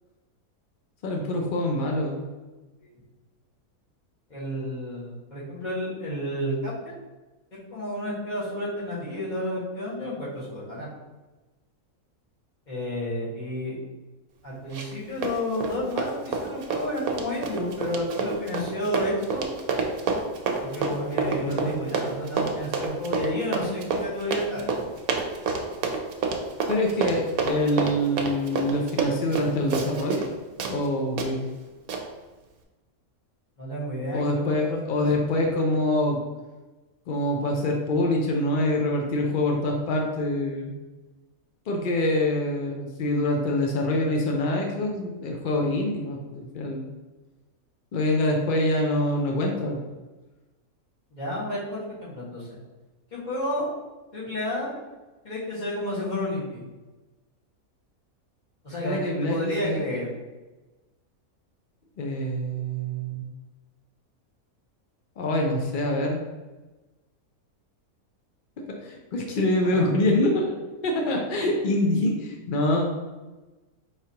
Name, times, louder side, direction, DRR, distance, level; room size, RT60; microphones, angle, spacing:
voice 1, 1.0-2.3 21.5-21.7 26.7-30.3 30.7-31.5 34.1-36.2 37.1-40.7 41.7-46.9 47.9-49.8 58.8-59.8 62.0-63.3 65.2-66.2 68.8-70.6 70.8-72.9, left 1 dB, 80° left, 1 dB, 0.4 m, -25 dB
voice 2, 4.3-6.7 7.7-10.9 12.7-13.7 14.4-19.4 20.6-24.7 33.6-35.1 51.1-52.6 53.1-53.7 54.1-54.7 55.2-56.6 58.6-60.1 69.6-69.9, left 1 dB, 30° left, -8 dB, 1.5 m, -31 dB
Run, 14.7-15.0 15.2-30.3 30.6-30.7 31.2-31.3 31.9-32.0, right 4 dB, 75° right, 1.1 m, -28 dB
4.8 x 3.2 x 2.8 m, 1.2 s
omnidirectional pair, 1.6 m